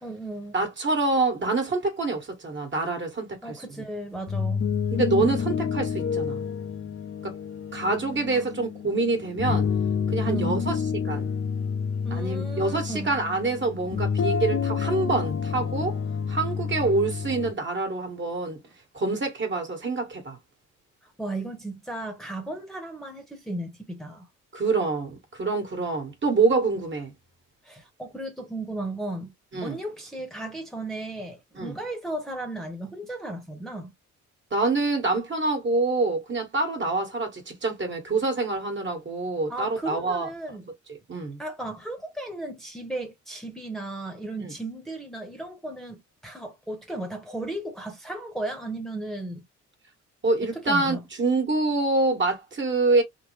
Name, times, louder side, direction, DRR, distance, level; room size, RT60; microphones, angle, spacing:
voice 1, 0.0-0.6 3.4-4.7 8.3-8.6 10.2-10.7 12.0-13.1 21.0-24.3 27.6-29.3 29.6-33.9 39.5-40.7 41.4-49.4 50.5-51.0, right 2 dB, ahead, 1.1 m, -35 dB
voice 2, 0.5-3.5 4.9-6.4 7.2-7.4 7.7-9.7 10.1-10.8 11.0-11.3 12.1-16.0 16.3-18.6 18.9-20.4 24.5-27.1 29.5-29.8 31.5-31.7 34.5-40.3 41.1-41.4 44.4-44.5 50.2-53.0, right 3 dB, 40° right, 1.5 m, -26 dB
sound 1, 4.1-17.5, left 6 dB, 45° left, 0.7 m, -29 dB
3.6 x 2.1 x 3.2 m
cardioid pair, 90°, 30 cm